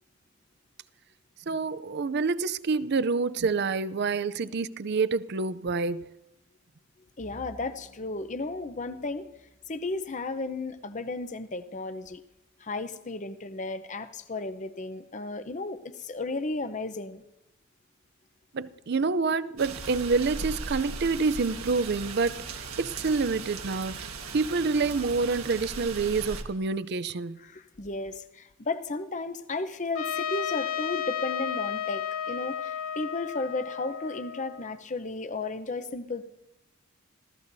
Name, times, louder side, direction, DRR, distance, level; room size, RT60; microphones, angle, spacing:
voice 1, 1.5-6.1 18.5-27.4, right 4 dB, 50° right, 0.5 m, -27 dB
voice 2, 7.2-9.3 9.7-12.2 12.6-17.2 27.4-36.2, left 3 dB, 35° left, 0.8 m, -34 dB
Bowed string instrument, 7.2-11.8, equal, 5° right, 1.1 m, -55 dB
sound 1, 19.6-26.4, right 4 dB, 80° right, 1.6 m, -38 dB
Trumpet, 30.0-34.8, left 9 dB, 75° left, 0.7 m, -33 dB
26.5 x 16.0 x 2.7 m
head